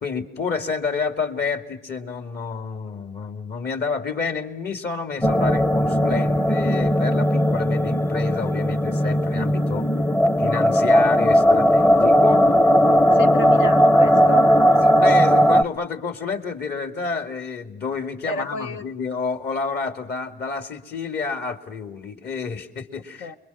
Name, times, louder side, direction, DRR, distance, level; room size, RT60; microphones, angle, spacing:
voice 1, 0.0-9.9 10.4-12.5 14.8-23.3, left 5 dB, 55° left, 5 dB, 2.7 m, -29 dB
sound 1, 5.2-15.6, equal, 10° left, 0.8 m, -17 dB
voice 2, 13.1-14.5 18.3-18.8 23.2-23.4, left 4 dB, 80° left, 6 dB, 1.4 m, -30 dB
29.5 x 22.5 x 5.9 m, 0.87 s
cardioid pair, 90°, 20 cm